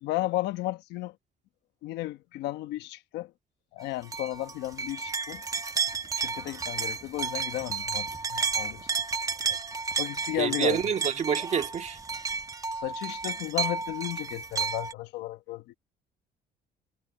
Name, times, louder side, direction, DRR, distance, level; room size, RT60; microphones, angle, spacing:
voice 1, 0.0-1.1 1.8-3.3 3.7-5.4 6.2-8.9 10.0-10.8 12.8-15.7, left 16 dB, 85° left, 1.1 m, -34 dB
sound 1, 4.1-14.9, right 5 dB, 20° right, 1.0 m, -32 dB
voice 2, 10.4-12.0, right 7 dB, 45° right, 2.1 m, -27 dB
cardioid pair, 110°, 17 cm